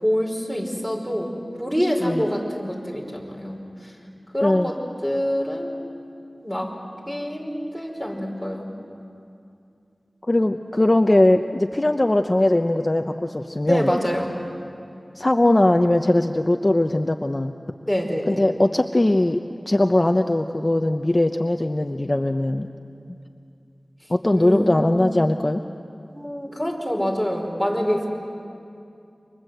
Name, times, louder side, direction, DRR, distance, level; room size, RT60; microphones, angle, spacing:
voice 1, 0.0-1.3 1.6-3.9 4.3-4.7 5.0-5.7 6.4-6.7 7.1-8.7 13.7-14.3 17.9-18.5 24.3-25.2 26.1-28.1, equal, 5° right, 0 dB, 5.3 m, -26 dB
voice 2, 10.3-13.9 15.2-17.5 18.3-22.7 24.1-25.6, left 1 dB, 35° left, 5 dB, 0.8 m, -20 dB
29.5 x 25.0 x 8.0 m, 2.5 s
wide cardioid pair, 65°, 0 cm